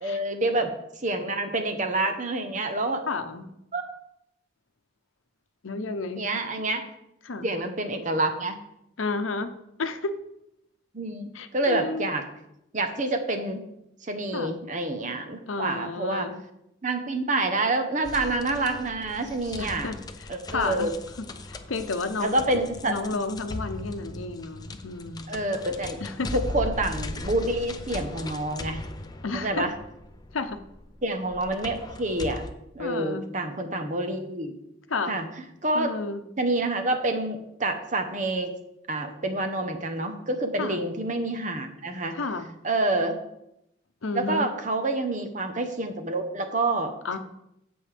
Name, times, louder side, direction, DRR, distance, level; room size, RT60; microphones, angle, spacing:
voice 1, 0.0-0.7 1.0-3.0 3.7-3.8 6.2-6.8 7.4-8.6 10.9-12.2 12.7-13.6 14.0-16.3 16.8-19.9 20.3-20.9 22.2-22.9 25.3-26.0 26.3-28.8 29.3-29.7 31.0-32.4 32.7-34.5 35.1-35.3 35.6-35.9 36.4-38.5 38.9-42.2 42.6-43.2 44.1-47.2, right 2 dB, 40° right, 6 dB, 1.0 m, -27 dB
voice 2, 3.1-3.5 5.6-6.2 7.2-7.5 9.0-9.5 9.8-10.1 11.3-12.1 14.3-14.6 15.5-16.4 19.6-20.9 21.2-22.6 22.9-25.4 26.0-26.4 29.2-29.6 30.3-30.6 32.8-33.2 34.9-35.2 35.7-36.2 40.6-40.8 42.1-42.5 44.0-44.5 47.0-47.2, left 3 dB, 90° left, 9 dB, 0.8 m, -31 dB
sound 1, 18.0-32.5, left 2 dB, 20° left, 0.5 m, -38 dB
15.5 x 5.4 x 3.4 m, 0.82 s
head